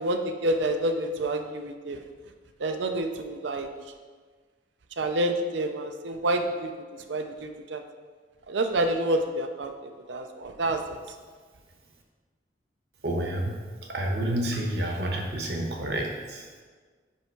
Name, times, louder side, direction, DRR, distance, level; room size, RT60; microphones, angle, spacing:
voice 1, 0.0-2.0 2.6-3.7 5.0-6.7 7.1-7.8 8.5-9.7 10.1-10.8, right 1 dB, 75° right, 6 dB, 0.6 m, -28 dB
voice 2, 13.0-13.5 13.8-16.6, right 1 dB, 60° right, 1 dB, 1.0 m, -29 dB
5.6 x 5.5 x 4.5 m, 1.5 s
head